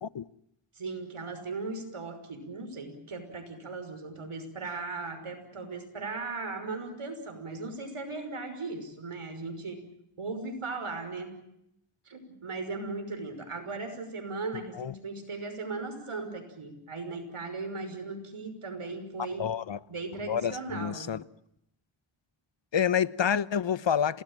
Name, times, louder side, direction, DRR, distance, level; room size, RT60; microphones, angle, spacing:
voice 1, 0.7-9.8 10.2-11.4 12.1-19.5 19.9-21.1, right 3 dB, 80° right, 5.9 m, -37 dB
voice 2, 19.4-19.8 20.3-21.2 22.7-24.2, left 8 dB, 60° left, 1.0 m, -28 dB
28.5 x 19.0 x 9.0 m
cardioid pair, 55°, 50 cm